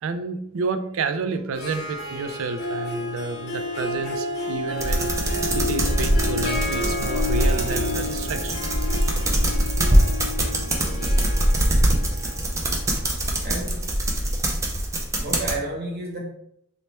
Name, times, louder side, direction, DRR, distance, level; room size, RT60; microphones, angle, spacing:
voice 1, 0.0-8.6 11.9-12.0 12.9-13.0 13.3-13.4, right 4 dB, 85° right, 0.4 m, -30 dB
Harp, 1.5-15.1, left 2 dB, 55° left, 0.7 m, -31 dB
sound 1, 4.8-15.6, right 1 dB, 15° right, 0.4 m, -23 dB
voice 2, 10.8-11.7 13.4-14.1 15.2-16.2, right 2 dB, 50° right, 1.0 m, -33 dB
3.1 x 2.1 x 4.2 m
head